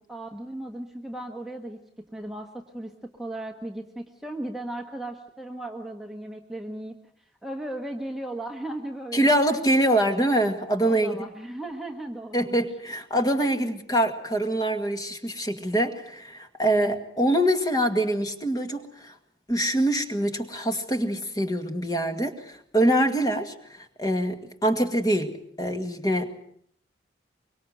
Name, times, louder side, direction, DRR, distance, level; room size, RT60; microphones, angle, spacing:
voice 1, 0.1-1.8 2.1-9.3 10.8-12.7 13.4-13.7, right 1 dB, ahead, 2 dB, 1.4 m, -36 dB
voice 2, 9.1-11.2 12.3-19.2 19.5-26.3, right 1 dB, 20° left, 5 dB, 2.0 m, -24 dB
24.5 x 24.0 x 7.8 m, 0.64 s
head